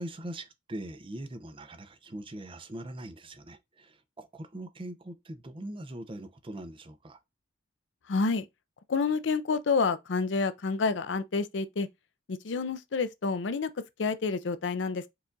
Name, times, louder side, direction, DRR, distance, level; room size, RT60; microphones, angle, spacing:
voice 1, 0.0-7.2, right 1 dB, 30° right, 0.6 m, -41 dB
voice 2, 8.1-8.5 8.9-11.9 12.3-15.0, left 4 dB, 85° left, 0.5 m, -29 dB
4.7 x 2.4 x 3.9 m
head